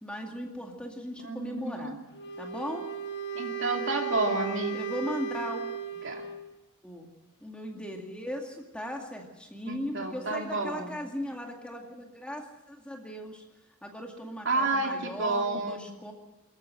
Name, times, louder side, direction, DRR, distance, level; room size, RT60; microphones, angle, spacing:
voice 1, 0.0-2.0 2.4-2.9 4.7-5.6 6.8-7.1 7.4-13.4 13.8-16.1, equal, 5° left, 1 dB, 2.2 m, -38 dB
voice 2, 1.2-2.0 3.3-4.8 6.0-6.2 9.7-10.9 14.4-15.9, right 2 dB, 55° right, 3 dB, 2.7 m, -30 dB
Wind instrument woodwind instrument, 2.1-6.5, right 6 dB, 50° left, 1.4 m, -36 dB
24.0 x 14.5 x 7.6 m, 1.1 s
head